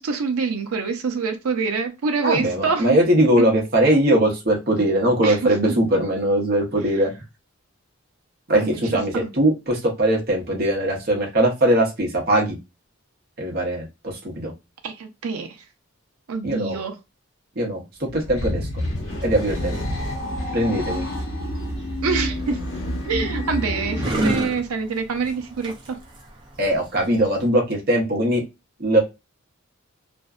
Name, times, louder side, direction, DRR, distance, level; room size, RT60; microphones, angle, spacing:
voice 1, 0.0-3.0 3.4-3.5 5.2-5.5 8.6-8.8 9.1-9.3 14.8-15.6 16.3-17.0 22.0-22.6 23.0-26.0, right 5 dB, 90° right, 0.5 m, -26 dB
voice 2, 2.2-7.1 8.5-12.6 13.4-14.5 16.4-16.8 17.6-17.8 18.1-18.7 19.2-19.8 20.5-21.0 26.6-28.4 28.8-29.0, right 1 dB, 45° right, 0.8 m, -20 dB
sound 1, 18.0-24.3, left 1 dB, 75° left, 0.9 m, -28 dB
sound 2, 21.4-27.5, right 1 dB, 20° right, 0.4 m, -31 dB
2.5 x 2.1 x 2.3 m
head